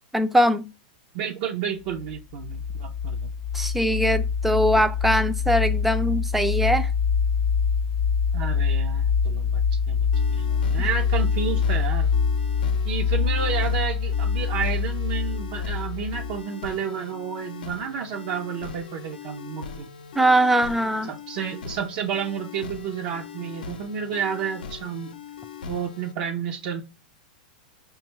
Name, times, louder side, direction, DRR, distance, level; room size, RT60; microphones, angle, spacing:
voice 1, 0.1-0.7 3.5-6.9 20.2-21.1, right 1 dB, 5° right, 0.4 m, -21 dB
voice 2, 1.1-3.3 8.3-12.1 12.8-19.9 21.1-25.1 25.7-26.8, right 7 dB, 55° right, 0.6 m, -31 dB
sound 1, 1.9-16.4, left 6 dB, 35° left, 0.6 m, -24 dB
sound 2, 10.1-26.1, left 6 dB, 85° left, 0.6 m, -40 dB
5.2 x 2.3 x 3.0 m
hypercardioid pair, 125°, 5 cm